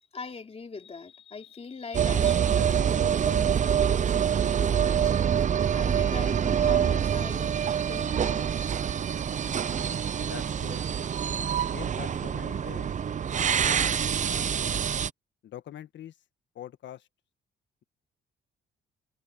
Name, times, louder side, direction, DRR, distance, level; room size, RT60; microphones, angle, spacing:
voice 1, 0.1-4.1 4.4-5.1 5.7-7.5 7.9-8.6, left 4 dB, 30° left, 3.4 m, -41 dB
sound 1, 1.9-15.1, right 8 dB, 40° right, 0.6 m, -26 dB
voice 2, 10.2-10.8 11.6-12.9 13.5-13.9 14.2-14.6 15.4-16.2 16.5-17.1, left 11 dB, 70° left, 1.5 m, -44 dB
cardioid pair, 90°, 20 cm